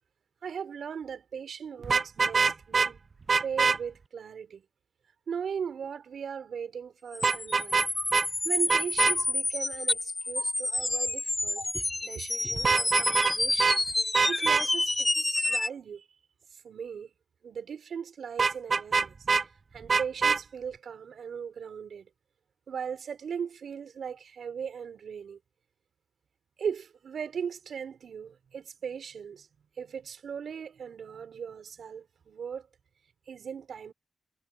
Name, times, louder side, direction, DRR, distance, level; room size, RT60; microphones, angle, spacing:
voice 1, 0.4-3.0 3.4-4.6 5.3-7.8 8.4-16.0 16.6-17.1 17.4-19.1 19.7-22.1 22.7-25.4 26.6-29.5 29.8-32.7 33.3-33.9, right 7 dB, 90° right, 6.0 m, -38 dB
Vehicle horn car horn honking, 1.8-2.9 3.3-3.8 7.2-7.9 8.1-8.3 8.7-9.1 12.6-13.3 13.6-13.8 14.1-14.6 18.4-19.4 19.9-20.4, right 4 dB, 55° right, 0.5 m, -24 dB
sound 1, 7.1-15.7, left 2 dB, 25° left, 3.7 m, -29 dB
cardioid pair, 75°, 0 cm